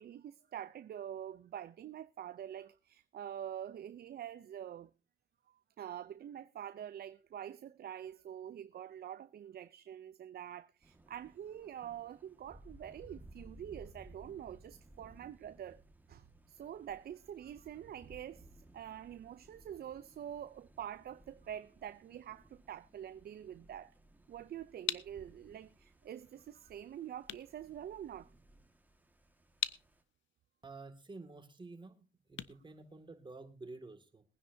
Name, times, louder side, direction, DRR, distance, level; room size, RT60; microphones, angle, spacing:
voice 1, 0.0-4.9 5.5-15.8 16.1-18.5 18.7-23.9 24.3-28.3, right 10 dB, 50° right, 0.5 m, -46 dB
Thunder, 10.8-30.0, right 1 dB, 10° right, 1.7 m, -60 dB
sound 1, 24.2-33.6, left 12 dB, 70° left, 0.7 m, -45 dB
voice 2, 30.6-34.2, right 3 dB, 25° right, 2.2 m, -50 dB
21.5 x 10.0 x 2.7 m
cardioid pair, 90°, 20 cm